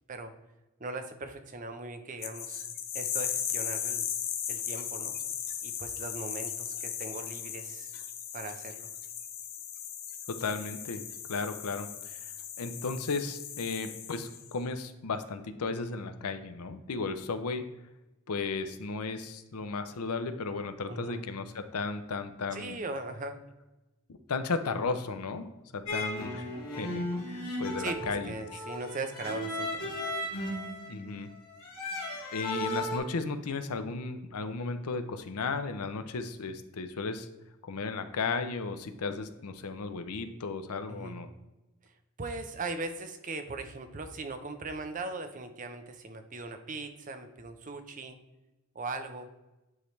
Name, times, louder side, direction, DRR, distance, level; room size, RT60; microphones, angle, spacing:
voice 1, 0.8-2.7 2.9-4.1 4.5-5.2 5.6-7.9 8.3-8.9 20.9-21.2 22.5-23.4 27.8-29.9 40.9-41.2 42.2-48.2 48.7-49.3, right 3 dB, 35° right, 7 dB, 0.6 m, -39 dB
sound 1, 2.2-14.5, left 9 dB, 40° left, 0.5 m, -37 dB
voice 2, 10.3-11.0 11.3-12.2 12.6-17.6 18.3-22.8 24.3-25.5 25.7-26.4 26.8-28.3 30.9-31.3 32.3-37.3 37.6-41.3, left 4 dB, 85° left, 9 dB, 0.6 m, -35 dB
Electric cello demo, 25.9-33.0, left 1 dB, 70° left, 2.1 m, -35 dB
9.3 x 3.3 x 3.2 m, 1.0 s
head